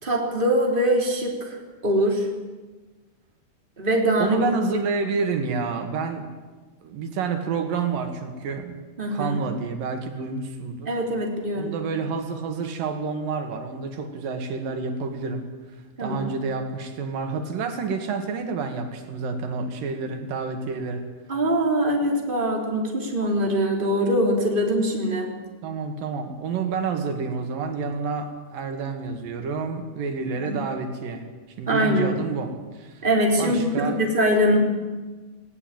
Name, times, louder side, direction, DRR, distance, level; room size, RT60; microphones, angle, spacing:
voice 1, 0.0-2.3 3.8-4.4 9.0-9.4 10.9-11.7 16.0-16.3 21.3-25.3 30.4-30.6 31.7-32.1 33.0-34.6, equal, 15° right, 1 dB, 3.3 m, -23 dB
voice 2, 4.2-6.3 6.8-8.8 9.1-10.9 11.5-15.5 16.0-21.0 25.6-31.3 31.6-33.0 33.4-34.0, right 4 dB, 85° right, 6 dB, 3.6 m, -29 dB
19.5 x 17.5 x 9.0 m, 1.3 s
omnidirectional pair, 3.9 m